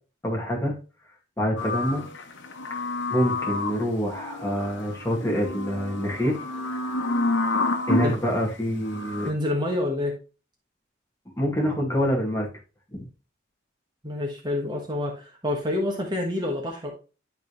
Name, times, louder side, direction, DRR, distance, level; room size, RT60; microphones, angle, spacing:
voice 1, 0.2-0.7 1.4-2.0 3.1-6.4 7.9-9.3 11.4-12.5 12.9-13.1, equal, 15° left, -1 dB, 2.3 m, -26 dB
sound 1, 1.6-8.2 8.8-9.3, left 2 dB, 75° left, 1.1 m, -29 dB
voice 2, 9.2-10.2 14.0-16.9, left 1 dB, 20° right, 0 dB, 1.4 m, -27 dB
11.5 x 3.8 x 3.2 m, 0.33 s
head